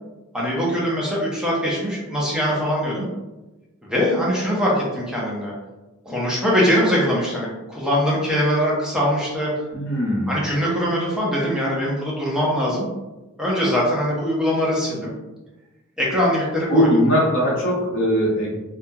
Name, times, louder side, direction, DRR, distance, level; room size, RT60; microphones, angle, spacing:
voice 1, 0.3-3.1 3.8-5.5 6.0-9.5 10.3-12.9 13.4-15.1 16.0-16.9, equal, 5° right, -5 dB, 0.6 m, -22 dB
voice 2, 9.7-10.4 16.7-18.5, equal, 60° left, -5 dB, 0.7 m, -20 dB
2.8 x 2.4 x 2.3 m, 1.1 s
head